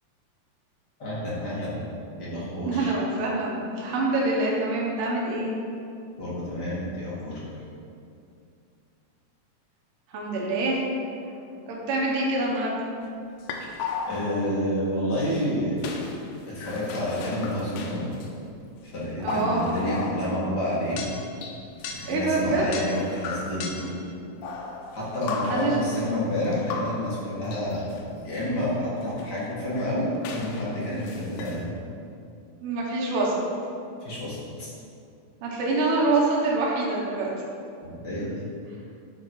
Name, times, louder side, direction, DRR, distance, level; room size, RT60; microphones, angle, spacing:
voice 1, 1.0-1.8 2.2-2.9 6.2-7.4 14.1-15.9 16.5-18.1 18.8-21.0 21.9-23.9 24.9-28.0 28.2-31.7 34.0-34.7 37.8-38.3, left 1 dB, 40° left, -8 dB, 1.6 m, -29 dB
voice 2, 2.6-5.5 10.1-10.8 11.7-12.8 19.2-19.7 22.1-22.7 25.5-25.8 30.9-31.0 32.6-33.4 35.4-37.3, right 2 dB, 75° right, -3 dB, 2.7 m, -25 dB
sound 1, 13.4-14.6 15.8-18.3 18.9-20.6 21.0-22.2 22.7-24.0 24.4-26.1 26.4-28.0 28.4-28.5 29.0-31.6, left 4 dB, 80° left, 2.3 m, -36 dB
9.7 x 3.9 x 4.6 m, 2.5 s
omnidirectional pair, 4.0 m